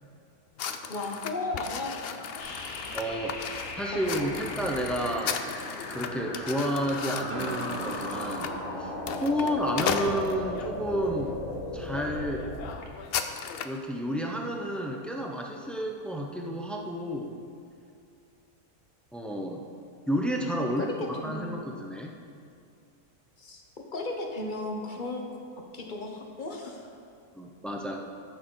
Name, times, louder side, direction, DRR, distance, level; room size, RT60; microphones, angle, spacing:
sound 1, 0.6-10.7 11.3-11.5 11.9-12.1 12.3-13.8, left 7 dB, 85° left, 0.5 m, -36 dB
voice 1, 0.9-2.0 2.4-2.5 3.9-4.4 20.8-21.6 23.4-23.6 23.9-25.2 25.7-26.9, left 2 dB, 35° left, 2 dB, 1.1 m, -35 dB
sound 2, 2.4-12.9, left 2 dB, 60° left, 1.6 m, -37 dB
voice 2, 2.9-3.4 3.8-5.4 5.9-8.5 8.8-8.9 9.2-11.3 11.7-12.4 13.6-17.3 19.1-19.6 20.1-22.1 27.3-28.0, equal, ahead, 0 dB, 0.4 m, -31 dB
sound 3, 7.3-12.1, right 6 dB, 60° right, 0.5 m, -42 dB
13.5 x 6.4 x 3.9 m, 2.4 s
omnidirectional pair, 1.6 m